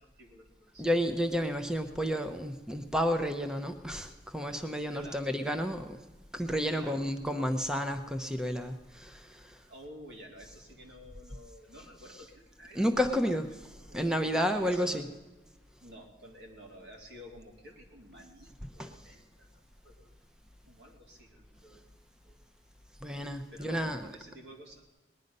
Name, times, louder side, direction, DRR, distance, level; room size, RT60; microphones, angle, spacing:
voice 1, 0.0-0.9 4.9-5.6 6.7-7.1 9.7-12.8 13.9-15.0 15.8-19.5 19.8-20.1 20.7-21.9 22.2-22.4 23.5-24.9, equal, 80° right, 0 dB, 3.1 m, -51 dB
voice 2, 0.8-6.0 6.3-9.6 12.7-15.1 18.8-18.9 23.0-24.1, equal, 5° right, 7 dB, 0.7 m, -31 dB
19.5 x 10.5 x 5.4 m, 1.2 s
head